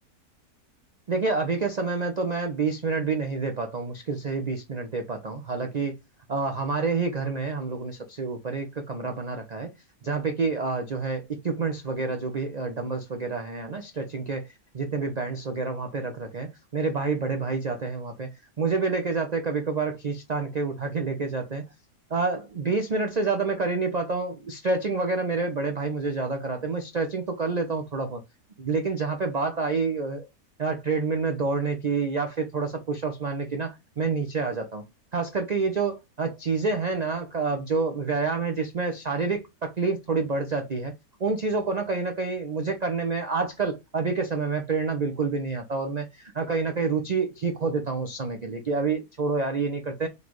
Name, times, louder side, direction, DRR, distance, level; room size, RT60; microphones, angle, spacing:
voice 1, 1.1-6.0 6.3-9.7 10.0-14.5 14.7-21.7 22.1-28.2 28.6-30.3 30.6-34.8 35.1-40.9 41.2-50.1, right 4 dB, 85° right, 0.3 m, -28 dB
3.9 x 3.3 x 3.0 m
omnidirectional pair, 1.7 m